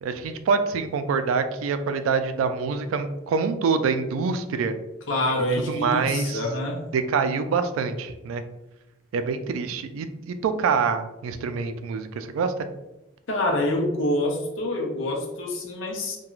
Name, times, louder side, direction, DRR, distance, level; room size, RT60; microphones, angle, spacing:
voice 1, 0.0-4.8 5.6-6.4 6.9-8.4 9.1-12.7, right 5 dB, 90° right, 9 dB, 0.3 m, -25 dB
voice 2, 5.1-6.8 13.3-16.2, left 1 dB, 70° left, 1 dB, 0.6 m, -26 dB
2.4 x 2.2 x 3.0 m, 0.96 s
head